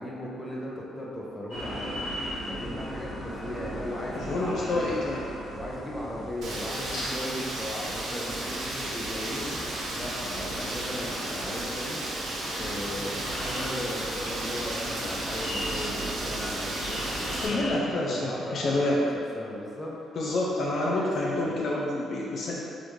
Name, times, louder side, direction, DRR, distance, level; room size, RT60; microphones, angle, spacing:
voice 1, 0.0-5.0 5.5-12.0 12.5-20.2 20.7-21.6, left 1 dB, 15° left, -5 dB, 0.7 m, -37 dB
sound 1, 1.5-17.8, equal, 90° left, 1.2 m, -37 dB
voice 2, 4.1-5.2 17.4-19.0 20.2-22.6, left 2 dB, 60° left, -3 dB, 0.4 m, -28 dB
Rain, 6.4-17.5, right 1 dB, 75° right, 0.7 m, -34 dB
3.0 x 2.5 x 3.5 m, 2.6 s
cardioid pair, 90°, 0 cm